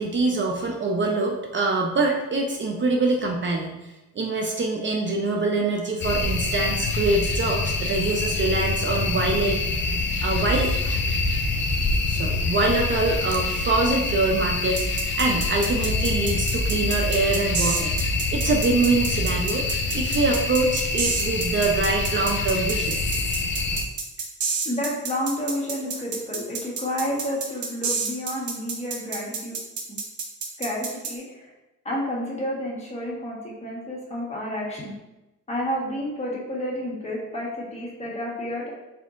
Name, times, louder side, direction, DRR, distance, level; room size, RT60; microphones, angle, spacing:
voice 1, 0.0-9.6 10.2-11.0 12.1-17.9 18.3-23.0, right 3 dB, 40° right, 1 dB, 0.5 m, -24 dB
sound 1, 6.0-23.8, left 3 dB, 40° left, 0.6 m, -26 dB
sound 2, 14.8-31.1, right 5 dB, 70° right, 0.8 m, -29 dB
voice 2, 24.6-29.5 29.9-30.0 30.6-31.5 31.8-34.9 35.5-38.7, equal, 20° left, -4 dB, 1.4 m, -30 dB
4.2 x 4.0 x 2.5 m, 1.0 s
cardioid pair, 90°, 30 cm